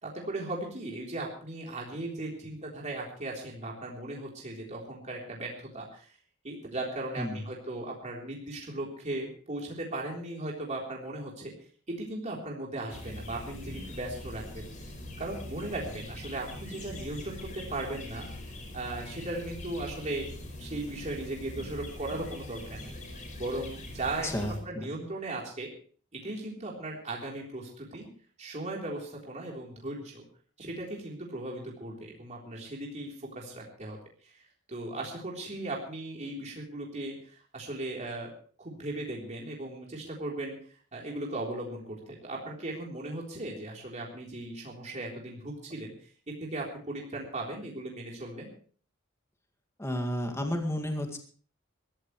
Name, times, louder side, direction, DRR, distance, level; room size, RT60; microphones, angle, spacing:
voice 1, 0.0-6.1 6.4-11.5 11.9-14.7 15.2-18.3 18.7-20.3 20.6-23.0 23.4-25.7 26.1-28.1 28.4-30.2 30.6-34.4 34.7-38.3 38.6-40.6 40.9-45.9 46.3-48.5, right 2 dB, 35° right, -2 dB, 3.7 m, -37 dB
sound 1, 12.9-24.6, left 1 dB, 40° left, 4.5 m, -42 dB
voice 2, 24.2-24.9 49.8-51.2, left 1 dB, 15° left, 4 dB, 2.1 m, -32 dB
22.0 x 14.5 x 3.2 m, 0.42 s
head